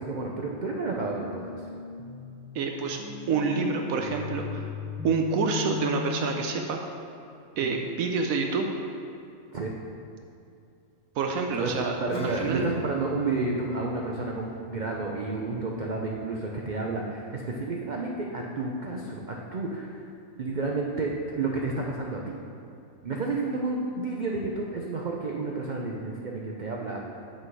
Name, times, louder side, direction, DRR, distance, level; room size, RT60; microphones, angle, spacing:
voice 1, 0.0-1.7 7.6-7.8 9.5-9.7 11.6-11.7 12.0-20.1 20.4-22.2 23.0-27.0, right 3 dB, 50° right, -1 dB, 0.5 m, -31 dB
sound 1, 1.0-6.9, left 9 dB, 10° right, 0.7 m, -38 dB
voice 2, 2.5-3.0 3.3-4.7 5.0-6.8 7.6-8.7 11.2-12.0 12.2-12.7, right 5 dB, 75° right, 3 dB, 1.0 m, -27 dB
Acoustic guitar / Strum, 12.1-18.1, right 3 dB, 20° left, 0.9 m, -44 dB
7.6 x 6.3 x 4.7 m, 2.5 s
omnidirectional pair, 1.5 m